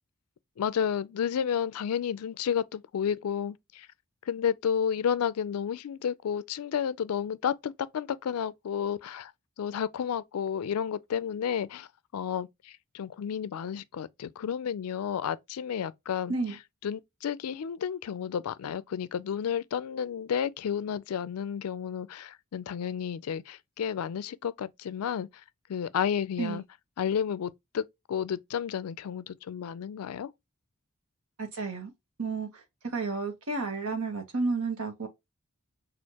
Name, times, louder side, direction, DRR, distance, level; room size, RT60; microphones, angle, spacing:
voice 1, 0.6-3.9 4.3-9.3 9.6-11.9 12.1-16.3 16.8-25.3 25.7-26.6 27.0-30.3, left 8 dB, 85° left, 0.4 m, -31 dB
voice 2, 31.4-31.9 32.2-35.1, right 3 dB, 75° right, 1.0 m, -32 dB
6.3 x 2.4 x 2.8 m
head